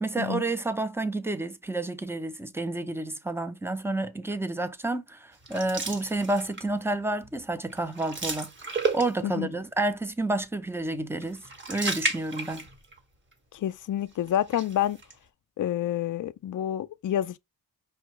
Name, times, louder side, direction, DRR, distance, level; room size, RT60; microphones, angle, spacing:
voice 1, 0.0-11.4 11.7-12.7, right 2 dB, 5° right, 0.5 m, -30 dB
sound 1, 5.4-6.8 7.2-7.4 7.7-9.4 11.2-13.0 13.3-13.4 14.3-15.1, right 3 dB, 25° right, 1.3 m, -33 dB
voice 2, 13.5-15.0 15.6-17.4, left 11 dB, 50° left, 0.5 m, -28 dB
5.4 x 2.3 x 3.1 m
cardioid pair, 70°, 42 cm